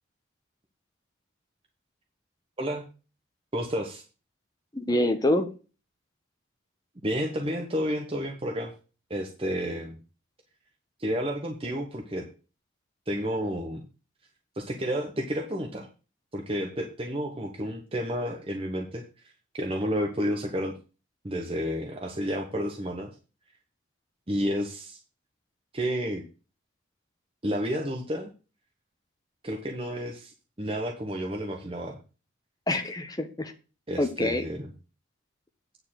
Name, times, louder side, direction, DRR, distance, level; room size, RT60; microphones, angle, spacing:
voice 1, 3.5-4.0 7.0-8.7 9.1-10.0 11.0-12.2 13.1-13.8 14.5-15.9 16.3-19.0 19.5-20.7 21.2-23.1 24.3-25.0 25.7-26.2 27.4-28.3 29.4-30.3 30.6-32.0 33.9-34.7, equal, 30° right, 2 dB, 1.0 m, -31 dB
voice 2, 4.7-5.5 32.7-33.5 34.0-34.4, left 1 dB, 20° left, 6 dB, 1.1 m, -26 dB
9.3 x 4.3 x 7.6 m, 0.34 s
head